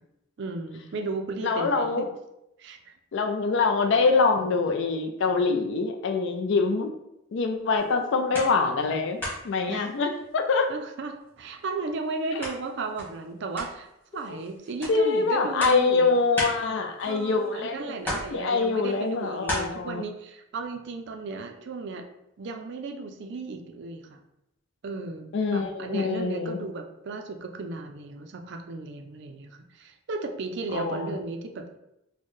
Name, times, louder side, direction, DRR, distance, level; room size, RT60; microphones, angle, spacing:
voice 1, 0.4-2.1 2.6-2.9 9.7-9.9 10.7-16.2 17.0-22.1 22.4-24.2 24.8-31.8, right 3 dB, 55° right, 5 dB, 0.4 m, -35 dB
voice 2, 1.4-2.0 3.1-6.9 7.3-9.2 9.4-10.7 14.9-17.9 18.3-20.0 25.3-26.6 30.7-31.2, left 4 dB, 60° left, 5 dB, 0.4 m, -24 dB
sound 1, 7.8-8.9 9.2-10.7 11.1-17.6 18.0-19.6, equal, 10° left, 1.3 m, -37 dB
4.4 x 2.1 x 3.1 m, 0.84 s
head